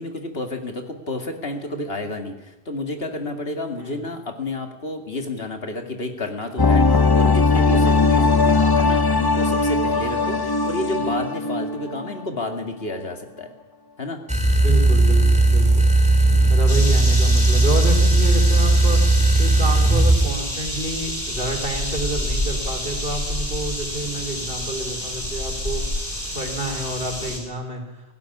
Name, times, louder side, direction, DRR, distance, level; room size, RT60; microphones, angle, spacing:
voice 1, 0.0-13.5 14.0-14.2 16.2-16.6 24.0-24.3, left 2 dB, 75° left, 5 dB, 2.5 m, -30 dB
sound 1, 6.6-12.2 12.5-12.6, left 3 dB, 25° left, 0.8 m, -19 dB
sound 2, 14.3-20.3, right 2 dB, 5° right, 2.7 m, -16 dB
voice 2, 14.6-15.9 16.5-19.0 19.4-25.8 26.3-27.8, right 1 dB, 65° right, 3 dB, 4.0 m, -29 dB
sound 3, 16.7-27.4, left 1 dB, 45° left, 6.0 m, -28 dB
17.5 x 16.5 x 9.9 m, 0.97 s
omnidirectional pair, 1.0 m